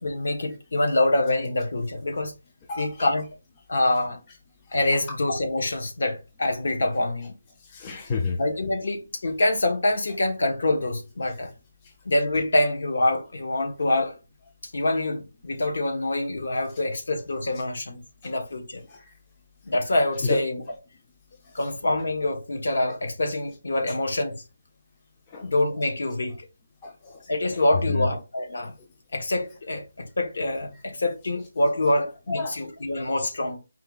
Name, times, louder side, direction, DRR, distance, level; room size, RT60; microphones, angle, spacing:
voice 1, 0.0-2.3 2.8-3.3 3.7-4.2 4.7-7.3 8.4-11.5 12.0-14.2 14.6-18.8 19.6-20.6 21.5-24.4 25.4-26.4 27.3-28.7 29.1-33.6, left 1 dB, 60° left, 1.2 m, -25 dB
voice 2, 7.7-8.4 18.9-19.0 20.2-20.4 25.3-25.5 26.8-27.2 27.9-28.1 32.3-32.6, left 4 dB, 15° left, 0.5 m, -29 dB
4.6 x 2.4 x 3.8 m
hypercardioid pair, 175°, 0 cm